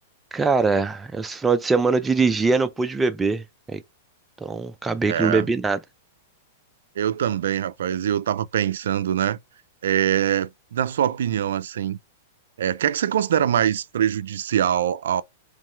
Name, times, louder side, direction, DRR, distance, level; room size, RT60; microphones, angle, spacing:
voice 1, 0.3-3.8 4.4-5.8, right 4 dB, 10° right, 0.4 m, -22 dB
voice 2, 5.1-5.5 7.0-9.4 9.8-12.0 12.6-15.2, right 10 dB, 80° right, 0.4 m, -23 dB
3.6 x 3.2 x 3.3 m
hypercardioid pair, 140°, 0 cm